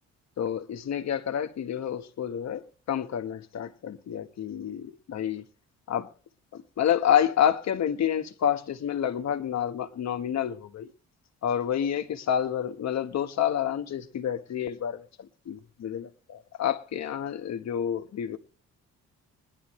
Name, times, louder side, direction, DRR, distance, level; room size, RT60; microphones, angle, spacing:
voice 1, 0.4-5.4 5.9-6.1 6.5-10.9 11.4-18.4, left 9 dB, 60° left, 1.5 m, -29 dB
20.0 x 11.0 x 3.2 m
cardioid pair, 90°, 30 cm